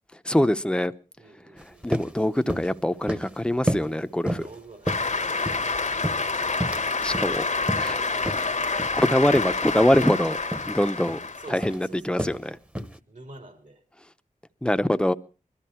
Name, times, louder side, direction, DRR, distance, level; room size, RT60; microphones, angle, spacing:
voice 1, 0.3-0.9 1.8-4.4 7.0-7.4 7.8-8.0 8.9-10.4 10.7-11.2 11.5-12.6 14.6-15.1, left 1 dB, 5° left, 0.8 m, -23 dB
voice 2, 1.2-1.9 4.2-5.3 6.4-8.5 11.4-12.3 13.1-13.8, right 2 dB, 70° right, 3.7 m, -47 dB
sound 1, 1.6-1.7 1.9-2.1 2.5-2.7 3.1-3.3 3.7-3.9 4.3-4.5 4.9-5.7 6.0-6.9 7.1-7.3 7.7-7.9 8.3-8.4 8.8-9.0 9.4-9.5 9.9-10.1 10.5-10.7 11.1-11.3 11.6-11.8 12.2-12.4 12.7-13.0, equal, 10° right, 1.1 m, -30 dB
Cheering / Applause, 4.9-11.7, left 4 dB, 65° left, 1.2 m, -28 dB
21.0 x 13.0 x 4.5 m
wide cardioid pair, 60°, 14 cm